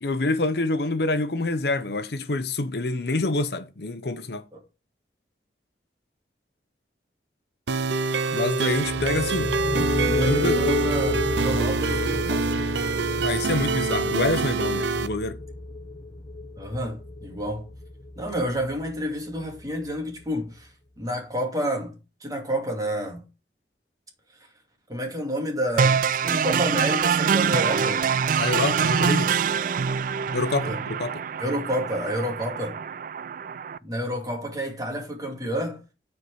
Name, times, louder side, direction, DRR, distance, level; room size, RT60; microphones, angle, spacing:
voice 1, 0.0-4.4 8.3-9.5 10.1-10.7 13.2-15.4 28.4-29.3 30.3-31.2, left 2 dB, 65° left, 0.8 m, -26 dB
sound 1, 7.7-15.1, right 4 dB, 85° right, 0.6 m, -25 dB
sound 2, 8.7-20.2, left 2 dB, 35° left, 0.8 m, -32 dB
voice 2, 9.8-12.4 16.6-17.7 18.2-20.7 21.0-23.2 24.9-28.0 28.5-28.9 30.6-30.8 31.4-32.8 33.8-35.8, equal, 20° right, 2.4 m, -30 dB
sound 3, 25.8-33.8, right 6 dB, 50° right, 0.3 m, -25 dB
9.7 x 4.7 x 4.7 m
head